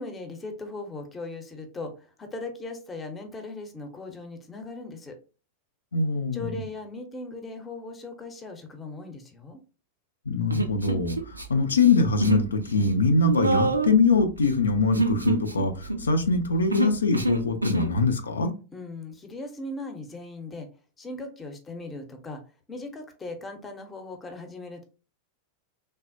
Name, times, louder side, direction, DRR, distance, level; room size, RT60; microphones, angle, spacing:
voice 1, 0.0-5.2 6.3-9.6 18.7-20.7 21.0-22.4 22.7-24.8, left 2 dB, 15° left, 5 dB, 0.6 m, -38 dB
voice 2, 5.9-6.4 10.3-18.5, left 3 dB, 75° left, 6 dB, 0.4 m, -23 dB
Human voice, 10.5-11.4 11.7-12.5 12.7-17.9, right 3 dB, 80° right, 0.3 m, -27 dB
3.2 x 2.0 x 2.5 m, 0.34 s
figure-of-eight pair, 90°, 0 cm